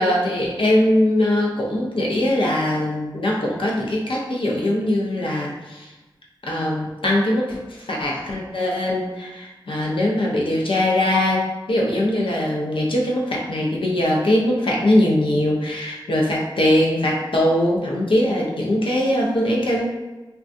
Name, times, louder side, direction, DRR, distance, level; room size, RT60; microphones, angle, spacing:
voice 1, 0.0-5.9 6.4-19.9, left 1 dB, 85° left, -2 dB, 0.6 m, -21 dB
3.5 x 2.3 x 2.6 m, 1.1 s
wide cardioid pair, 75°, 9 cm